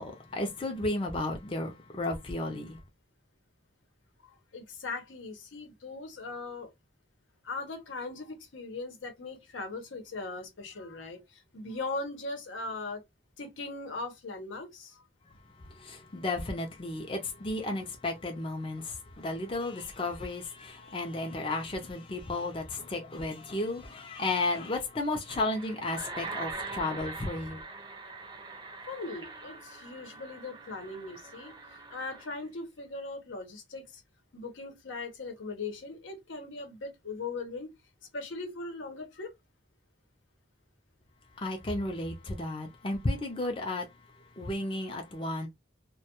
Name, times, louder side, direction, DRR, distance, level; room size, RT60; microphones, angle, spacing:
voice 1, 0.0-2.8 15.8-27.6 41.4-43.9 44.4-45.5, left 2 dB, 30° left, 0.4 m, -33 dB
voice 2, 4.5-6.7 7.4-13.0 13.4-15.0 28.9-34.0 34.3-37.7 38.1-39.3, left 3 dB, 90° left, 0.8 m, -39 dB
sound 1, 25.3-32.4, right 3 dB, 25° right, 0.5 m, -43 dB
2.2 x 2.2 x 2.8 m
head